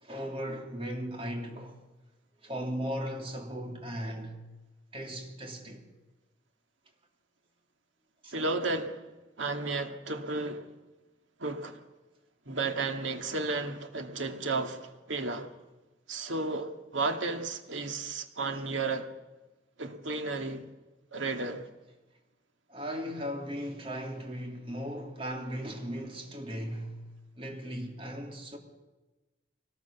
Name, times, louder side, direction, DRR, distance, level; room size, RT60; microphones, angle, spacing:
voice 1, 0.0-1.7 2.4-4.4 4.9-5.8 8.2-8.3 22.7-27.0 27.3-28.6, equal, 30° right, 3.2 m, -37 dB
voice 2, 8.3-9.1 9.4-10.7 11.4-11.8 12.5-15.5 16.1-19.1 19.8-20.7 21.1-21.7, right 3 dB, 90° right, 2.0 m, -33 dB
24.0 x 18.5 x 7.1 m
head